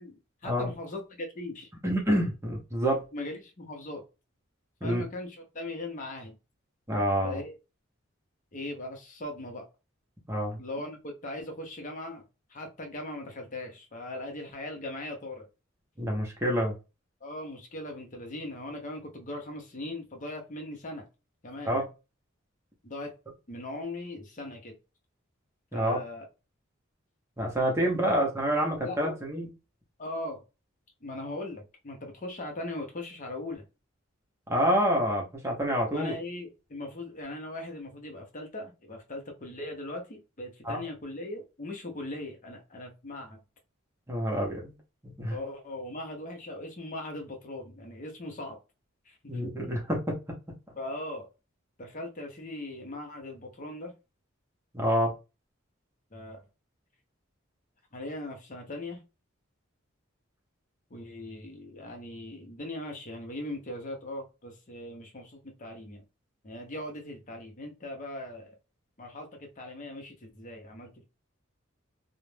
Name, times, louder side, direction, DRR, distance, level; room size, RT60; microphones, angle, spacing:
voice 1, 0.0-1.7 3.1-4.0 4.8-6.4 7.2-7.6 8.5-9.7 10.6-12.2 12.5-15.4 17.2-21.0 21.4-21.8 22.8-23.1 23.5-24.8 25.7-26.2 28.0-28.1 28.8-29.0 30.0-30.4 31.0-33.6 35.9-43.4 45.3-48.6 49.1-49.4 50.8-51.3 51.8-53.9 56.1-56.4 57.9-59.0 60.9-66.0 66.4-68.5 69.0-71.0, left 1 dB, 40° left, 0.7 m, -39 dB
voice 2, 1.8-3.0 4.8-5.0 6.9-7.4 10.3-10.6 16.0-16.7 21.7-21.8 25.7-26.0 27.4-29.5 34.5-36.1 40.6-40.8 44.1-44.7 45.0-45.4 49.3-50.2 54.7-55.1, equal, 15° right, 0.7 m, -27 dB
2.4 x 2.1 x 3.2 m
head